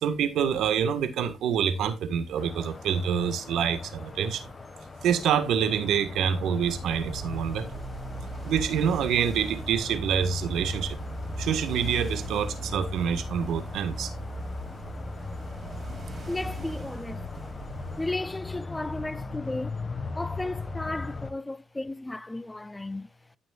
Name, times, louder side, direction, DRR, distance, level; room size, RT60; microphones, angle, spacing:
voice 1, 0.0-4.4 5.0-7.7 8.4-11.0 11.4-14.1, right 8 dB, 75° right, 1.6 m, -26 dB
sound 1, 2.4-21.3, left 4 dB, 30° left, 1.6 m, -39 dB
sound 2, 6.6-18.2, right 2 dB, 35° right, 3.6 m, -38 dB
voice 2, 16.3-17.3 18.0-19.8 20.1-23.1, left 2 dB, 15° left, 0.5 m, -34 dB
15.5 x 6.2 x 2.4 m
cardioid pair, 90°, 0 cm